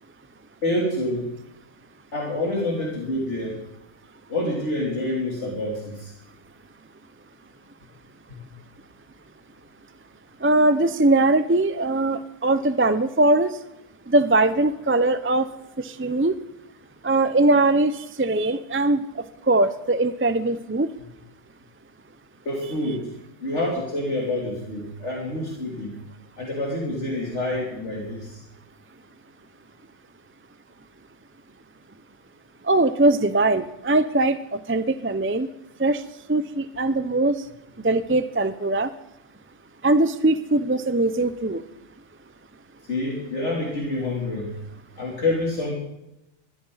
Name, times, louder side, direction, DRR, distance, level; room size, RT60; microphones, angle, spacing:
voice 1, 0.6-1.3 2.1-3.6 4.3-6.1 22.5-23.0 23.4-25.9 26.4-28.4 42.9-44.5 45.0-45.7, left 1 dB, 60° left, -3 dB, 3.6 m, -27 dB
voice 2, 10.4-13.5 14.1-15.5 15.8-16.3 17.0-20.9 32.7-35.5 35.8-36.0 36.3-37.4 37.8-38.9 39.8-41.6, right 2 dB, 20° right, 12 dB, 0.3 m, -21 dB
22.0 x 14.5 x 4.0 m, 0.89 s
omnidirectional pair, 1.4 m